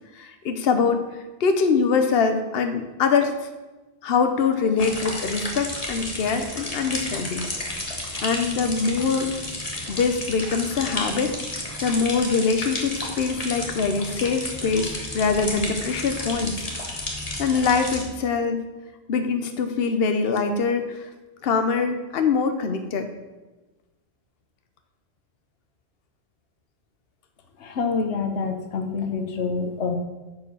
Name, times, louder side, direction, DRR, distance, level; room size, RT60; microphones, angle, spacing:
voice 1, 0.1-1.0 1.4-3.3 4.0-7.5 8.2-9.4 9.9-11.3 11.8-16.6 17.4-18.6 19.1-21.1 21.4-23.1, left 5 dB, 65° left, 7 dB, 1.0 m, -23 dB
sound 1, 4.8-18.0, left 1 dB, 35° left, 1.6 m, -32 dB
voice 2, 27.6-30.0, left 4 dB, 85° left, 7 dB, 1.2 m, -27 dB
10.5 x 5.0 x 7.0 m, 1.2 s
omnidirectional pair, 1.1 m